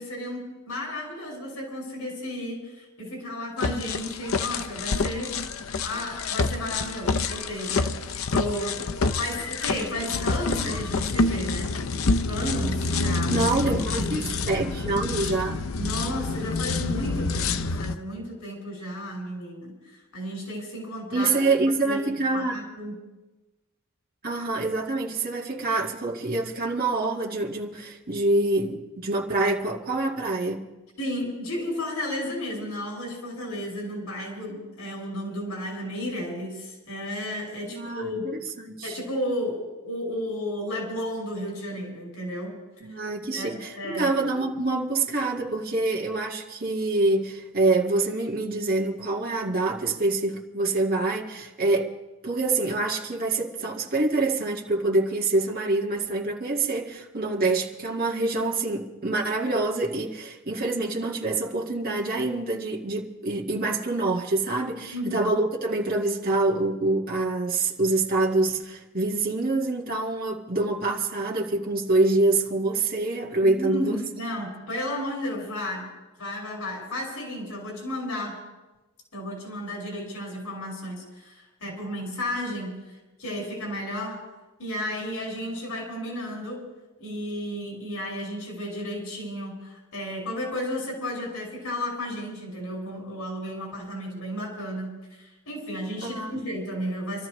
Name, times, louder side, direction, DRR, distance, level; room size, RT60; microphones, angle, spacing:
voice 1, 0.0-5.3 5.8-8.9 9.2-11.7 12.3-13.3 13.8-14.3 15.8-21.3 21.8-22.9 31.0-38.2 38.8-42.5 42.9-43.0 43.3-44.1 64.9-65.3 73.4-75.9 76.2-78.4 79.1-82.8 83.2-84.2 84.6-86.6 87.0-97.3, left 1 dB, 90° left, 5.7 m, -33 dB
sound 1, 3.6-18.0, left 3 dB, 70° left, 0.7 m, -27 dB
voice 2, 13.3-15.6 21.1-22.5 24.2-30.7 37.7-39.0 42.8-51.9 52.2-74.0 96.0-96.4, right 2 dB, 45° right, 1.9 m, -26 dB
27.0 x 13.5 x 3.2 m
head